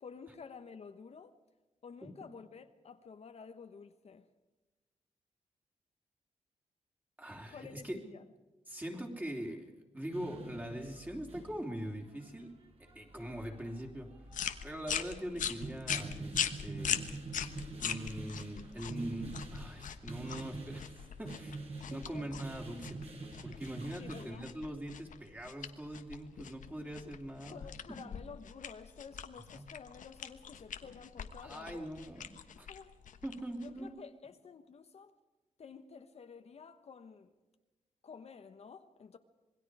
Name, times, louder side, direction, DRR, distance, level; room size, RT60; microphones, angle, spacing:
voice 1, 0.0-1.4 1.8-4.3 7.5-8.3 15.3-15.6 21.9-22.3 24.0-24.5 27.5-31.9 32.7-33.0 33.6-35.1 35.6-37.3 38.0-39.2, left 5 dB, 55° left, 1.1 m, -51 dB
voice 2, 7.2-8.0 8.7-12.5 12.9-14.1 14.6-17.0 17.8-20.9 21.2-21.6 21.9-23.0 23.4-28.0 29.5-29.7 31.4-32.7 33.2-34.0, right 1 dB, 15° right, 3.3 m, -42 dB
sound 1, 10.1-24.2, right 3 dB, 50° right, 7.1 m, -46 dB
sound 2, 14.3-33.9, left 8 dB, 90° left, 1.3 m, -41 dB
27.0 x 21.5 x 4.9 m
wide cardioid pair, 150°, 13 cm